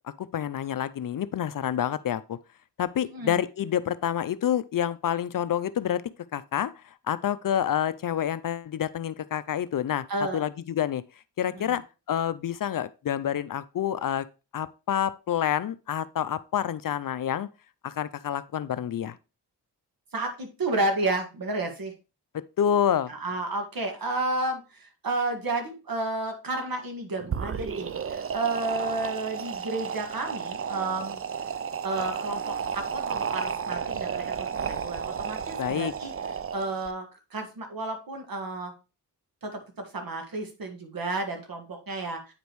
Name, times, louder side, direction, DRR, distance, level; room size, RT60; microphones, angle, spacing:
voice 1, 0.0-2.4 2.8-6.0 6.3-6.7 7.1-10.1 10.3-11.0 11.4-11.8 12.1-14.3 14.5-17.5 17.8-19.2 22.3-23.1 35.6-35.9, left 10 dB, 55° left, 0.5 m, -28 dB
voice 2, 10.1-10.4 11.5-11.8 20.1-21.9 23.1-31.2 31.8-36.1 36.5-37.1 37.3-38.7 39.4-39.6 39.9-42.3, right 2 dB, 55° right, 2.0 m, -31 dB
sound 1, 27.2-36.9, right 7 dB, 35° right, 0.5 m, -32 dB
8.9 x 5.1 x 3.1 m
cardioid pair, 65°, 41 cm